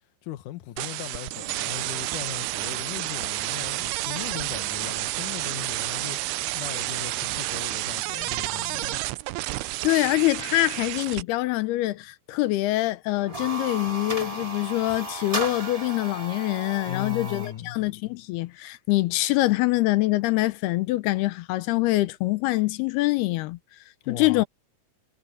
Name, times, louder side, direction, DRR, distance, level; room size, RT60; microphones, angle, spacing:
voice 1, 0.2-6.2 6.5-9.0 16.8-17.8 24.0-24.4, left 13 dB, 70° left, 2.2 m, -38 dB
sound 1, 0.8-11.2, right 19 dB, 90° right, 2.6 m, -30 dB
voice 2, 9.8-23.6 24.1-24.4, left 18 dB, 85° left, 2.8 m, -24 dB
sound 2, 13.2-17.6, right 1 dB, 10° right, 2.3 m, -34 dB
omnidirectional pair, 4.5 m